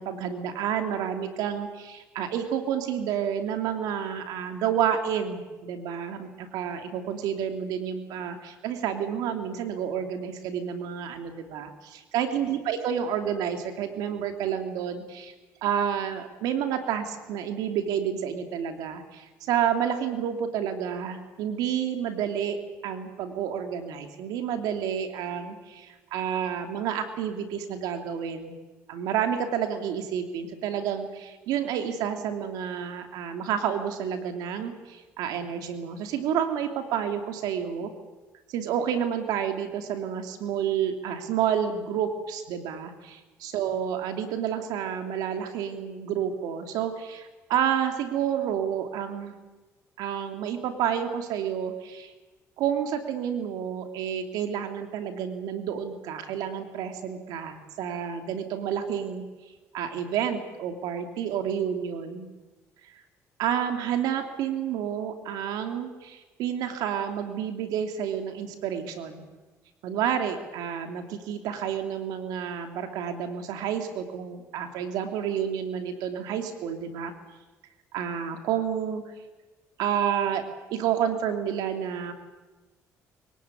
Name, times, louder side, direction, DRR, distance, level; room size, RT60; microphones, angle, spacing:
voice 1, 0.0-15.3 15.6-28.6 28.9-37.9 38.5-49.4 50.0-52.1 52.6-59.2 59.7-62.3 62.8-62.9 63.4-69.3 69.8-77.1 77.9-79.0 79.8-80.4 80.7-82.1, right 8 dB, 85° right, 7 dB, 2.8 m, -30 dB
23.0 x 17.5 x 9.8 m, 1.2 s
cardioid pair, 80°, 6 cm